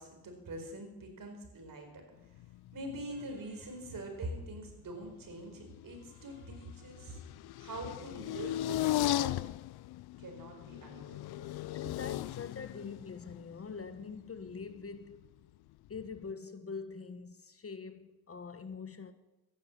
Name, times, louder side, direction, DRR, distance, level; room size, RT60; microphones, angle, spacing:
voice 1, 0.0-2.4 2.7-7.2 7.6-9.4 10.2-11.5, right 1 dB, 55° right, 4.6 m, -44 dB
sound 1, 2.4-3.4 3.6-4.6 4.9-15.3 15.9-16.3, left 15 dB, 70° left, 0.5 m, -38 dB
voice 2, 11.7-15.2 15.9-19.1, left 5 dB, 35° left, 1.1 m, -44 dB
14.5 x 11.0 x 7.3 m
cardioid pair, 85°, 39 cm